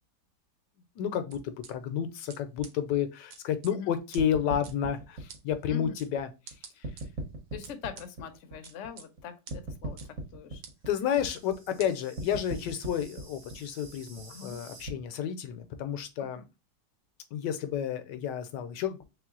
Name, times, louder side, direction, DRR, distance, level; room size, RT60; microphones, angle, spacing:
voice 1, 1.0-6.3 6.8-6.9 10.9-16.4 17.3-19.0, left 9 dB, 80° left, 9 dB, 1.2 m, -31 dB
sound 1, 1.3-1.7 2.3-2.4 2.6-2.7 3.3-3.7 4.1-4.2 4.6-4.7 5.3-5.4 6.0-6.1 6.5-7.0 7.6-8.1 8.6-9.1 9.5-9.6 10.0-10.1 10.6-10.7 11.3-11.4 11.8-11.9, right 6 dB, 65° right, 1.2 m, -47 dB
sound 2, 4.2-6.5 6.8-9.2 9.5-14.9, right 2 dB, 50° right, 1.2 m, -40 dB
voice 2, 7.5-10.6 14.3-14.6 16.3-16.4, left 7 dB, 60° left, 7 dB, 0.8 m, -42 dB
3.4 x 3.1 x 3.6 m, 0.27 s
omnidirectional pair, 1.9 m